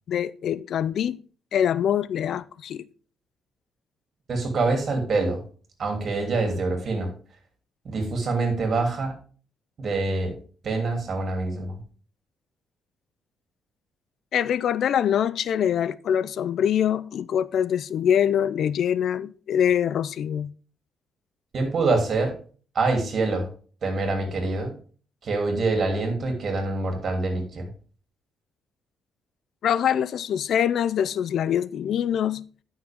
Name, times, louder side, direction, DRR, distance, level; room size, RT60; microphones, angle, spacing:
voice 1, 0.1-1.2 1.5-2.9 14.3-20.5 29.6-32.4, left 9 dB, 65° left, 0.4 m, -24 dB
voice 2, 4.3-5.4 5.8-7.1 7.8-9.1 9.8-10.3 10.6-11.8 21.5-22.3 22.7-23.5 23.8-24.7 25.2-27.7, right 3 dB, 50° right, 3.1 m, -25 dB
10.5 x 6.1 x 3.6 m
cardioid pair, 90°, 0 cm